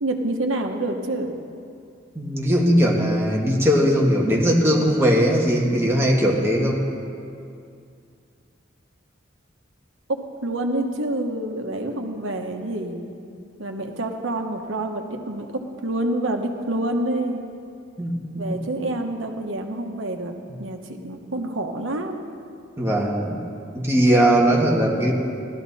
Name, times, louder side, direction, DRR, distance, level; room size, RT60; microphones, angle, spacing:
voice 1, 0.0-1.3 10.4-13.1 13.6-17.5 18.3-20.3 20.6-22.3, right 1 dB, 80° right, 4 dB, 1.2 m, -27 dB
voice 2, 2.2-6.8 18.0-18.6 22.8-23.4 23.7-25.1, equal, 15° right, -3 dB, 1.7 m, -19 dB
16.5 x 12.5 x 4.2 m, 2.4 s
head